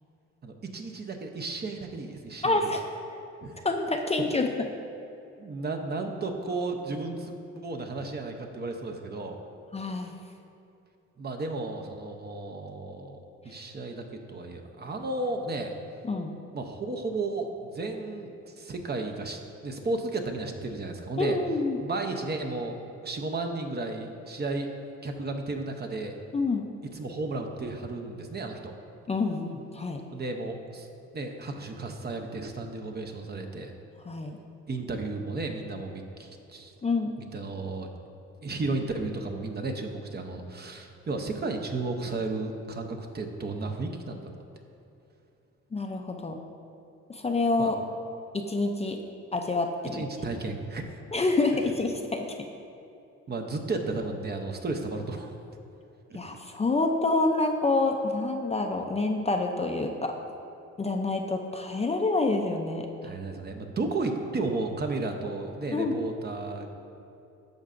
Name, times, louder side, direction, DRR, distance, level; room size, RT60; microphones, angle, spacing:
voice 1, 0.4-2.6 3.4-3.6 5.4-9.4 11.2-13.2 13.4-15.7 16.5-21.4 21.8-24.7 25.0-26.2 26.9-28.8 30.1-30.9 31.1-33.8 34.7-36.7 37.2-37.9 38.4-44.3 47.6-47.7 49.9-51.0 53.3-55.3 56.1-56.2 63.0-66.7, right 3 dB, 35° right, 4 dB, 0.7 m, -33 dB
voice 2, 2.4-2.8 3.6-4.5 9.7-10.1 16.0-16.4 21.2-21.8 26.3-26.7 29.1-30.0 34.1-34.4 36.8-37.1 45.7-46.4 47.1-47.8 48.3-49.0 49.3-50.0 51.1-52.3 56.1-60.1 60.8-62.9 65.7-66.0, left 3 dB, 20° left, 3 dB, 0.5 m, -27 dB
10.5 x 6.4 x 2.5 m, 2.7 s
cardioid pair, 90°, 30 cm